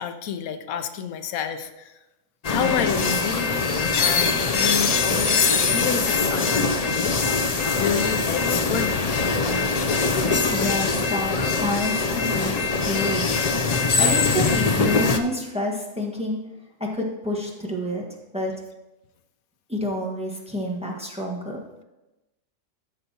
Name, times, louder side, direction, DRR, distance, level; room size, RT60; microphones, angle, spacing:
voice 1, 0.0-1.9 2.5-7.2 7.8-9.0, left 8 dB, 90° left, 9 dB, 1.1 m, -29 dB
sound 1, 2.4-15.2, left 4 dB, 55° left, 0.4 m, -22 dB
voice 2, 10.1-13.5 14.0-16.4 16.8-18.0 18.3-18.5 19.7-21.6, left 1 dB, 5° right, -2 dB, 1.3 m, -29 dB
14.5 x 6.7 x 2.9 m, 1.0 s
omnidirectional pair, 1.4 m